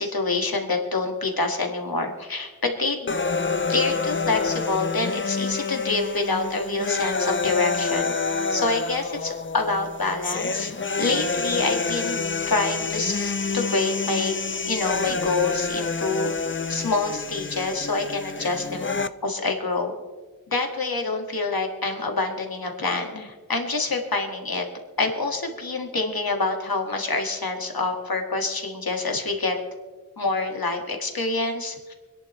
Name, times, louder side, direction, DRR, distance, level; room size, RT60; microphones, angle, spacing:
voice 1, 0.0-3.1 3.7-8.1 8.5-12.2 12.5-14.4 14.7-16.3 16.7-18.9 19.2-19.9 20.5-24.7 25.0-29.6 30.2-31.9, left 3 dB, 80° left, 2 dB, 1.9 m, -26 dB
sound 1, 3.1-19.1, left 4 dB, 35° left, 0.6 m, -28 dB
25.5 x 11.0 x 3.2 m, 1.4 s
wide cardioid pair, 45°, 35 cm